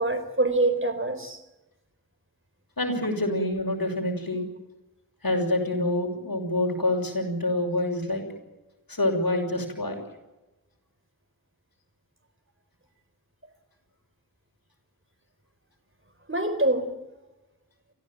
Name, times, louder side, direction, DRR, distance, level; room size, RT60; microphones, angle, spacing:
voice 1, 0.0-1.4 16.3-16.9, right 2 dB, 35° right, 9 dB, 4.1 m, -25 dB
voice 2, 2.8-4.4 5.2-8.2 8.9-10.0, left 1 dB, 70° left, 3 dB, 6.3 m, -26 dB
29.0 x 14.5 x 9.3 m, 1.1 s
wide cardioid pair, 45°, 36 cm